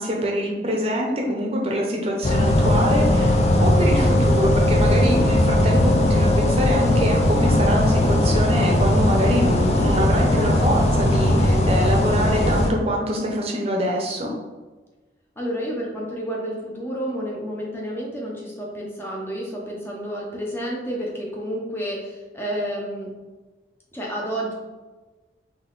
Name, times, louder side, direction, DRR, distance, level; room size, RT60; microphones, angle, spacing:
voice 1, 0.0-14.3, equal, 35° right, 0 dB, 0.7 m, -25 dB
sound 1, 2.2-12.7, left 1 dB, 35° left, 0.4 m, -18 dB
voice 2, 15.4-23.1 23.9-24.5, equal, 15° left, -3 dB, 0.8 m, -30 dB
3.8 x 3.1 x 3.9 m, 1.3 s
head